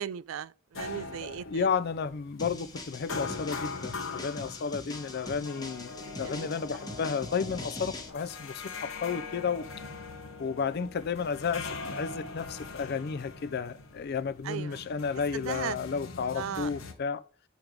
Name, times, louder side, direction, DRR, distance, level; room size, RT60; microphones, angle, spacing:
voice 1, 0.0-1.7 5.2-5.3 6.2-6.5 14.4-14.8 15.3-15.8 16.4-16.7, right 9 dB, 90° right, 0.3 m, -37 dB
handrails sounds, 0.7-16.9, left 4 dB, 85° left, 1.0 m, -42 dB
voice 2, 1.4-9.7 10.4-17.2, left 6 dB, 55° left, 0.4 m, -32 dB
sound 1, 2.4-8.1, left 2 dB, 20° left, 1.0 m, -42 dB
5.2 x 4.6 x 5.1 m
head